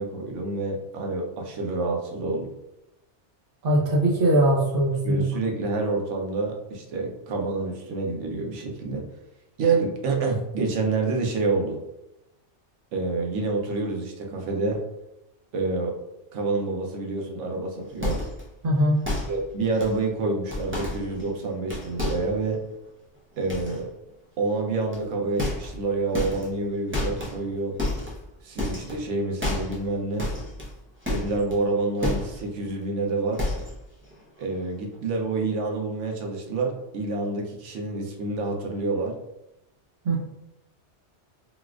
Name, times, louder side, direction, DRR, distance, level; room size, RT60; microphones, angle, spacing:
voice 1, 0.0-2.5 5.0-9.1 9.6-11.8 12.9-14.8 15.5-15.9 16.3-18.2 19.3-22.6 23.4-23.9 24.4-27.8 28.4-30.3 31.1-33.4 34.4-39.2, right 3 dB, 90° right, 1 dB, 1.0 m, -28 dB
voice 2, 3.6-5.2 18.6-19.0 40.0-40.2, right 1 dB, 55° right, -3 dB, 0.9 m, -21 dB
sound 1, 18.0-18.5 19.0-19.4 19.7-20.0 20.5-21.4 21.7-22.4 23.5-23.8 24.9-25.1 25.4-25.9 26.1-26.6 26.9-27.4 27.8-28.3 28.6-29.1 29.4-29.9 30.2-31.6 32.0-32.5 32.8-32.9 33.3-33.8 34.1-34.4 34.7-34.8, left 1 dB, 15° right, 0.5 m, -30 dB
4.0 x 2.3 x 2.3 m, 0.89 s
omnidirectional pair, 1.2 m